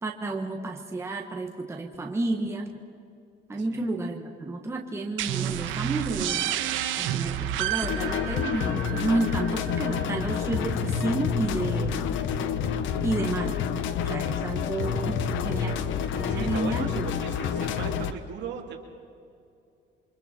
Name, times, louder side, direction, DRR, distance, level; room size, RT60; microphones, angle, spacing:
voice 1, 0.0-2.8 3.5-6.5 7.0-12.0 13.0-13.7 14.0-15.8 16.1-16.9, right 2 dB, 15° right, 1 dB, 1.5 m, -31 dB
sound 1, 5.2-10.6, right 11 dB, 80° right, 1.3 m, -31 dB
sound 2, 7.8-18.1, left 7 dB, 80° left, 1.2 m, -28 dB
voice 2, 16.1-18.8, right 7 dB, 65° right, 1 dB, 3.3 m, -38 dB
28.5 x 24.5 x 4.5 m, 2.5 s
cardioid pair, 155°, 20 cm